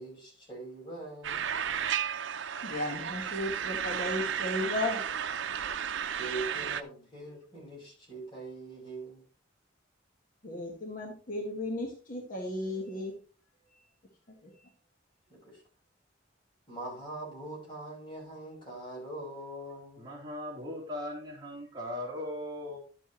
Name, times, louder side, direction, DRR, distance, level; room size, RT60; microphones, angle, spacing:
voice 1, 0.0-1.5 6.2-9.2 15.3-15.6 16.7-20.1, right 2 dB, 25° left, -3 dB, 5.5 m, -42 dB
sound 1, 1.2-6.8, right 8 dB, 90° right, 0.6 m, -33 dB
voice 2, 2.6-5.0 10.4-13.1, left 1 dB, 50° left, 2 dB, 1.5 m, -34 dB
voice 3, 20.0-22.8, left 1 dB, 25° right, -4 dB, 3.4 m, -38 dB
11.5 x 7.6 x 3.1 m, 0.40 s
head